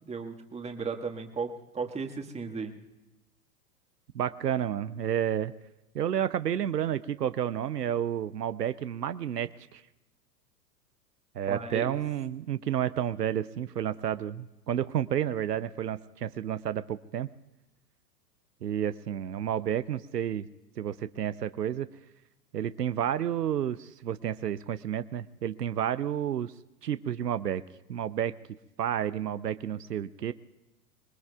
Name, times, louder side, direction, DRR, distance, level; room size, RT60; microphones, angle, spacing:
voice 1, 0.0-2.7 11.5-11.9, right 5 dB, 15° right, 4 dB, 1.7 m, -35 dB
voice 2, 4.1-5.5 5.9-9.8 11.3-17.3 18.6-20.5 20.8-21.9 22.5-26.5 26.8-27.6 27.9-28.3 28.8-30.3, right 10 dB, 80° right, 13 dB, 0.7 m, -30 dB
26.0 x 21.5 x 2.4 m, 1.0 s
figure-of-eight pair, 100°, 48 cm